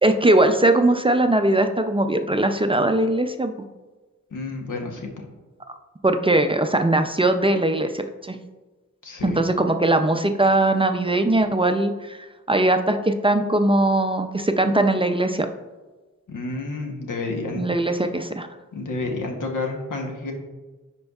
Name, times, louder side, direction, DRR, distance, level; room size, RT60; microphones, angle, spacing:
voice 1, 0.0-3.5 6.0-8.4 9.2-15.5 17.6-18.5, right 2 dB, 20° right, 6 dB, 0.4 m, -20 dB
voice 2, 4.3-5.1 9.0-9.4 16.3-18.0 18.7-20.3, left 3 dB, 85° left, 2 dB, 1.1 m, -30 dB
10.5 x 4.5 x 2.3 m, 1.2 s
wide cardioid pair, 75°, 31 cm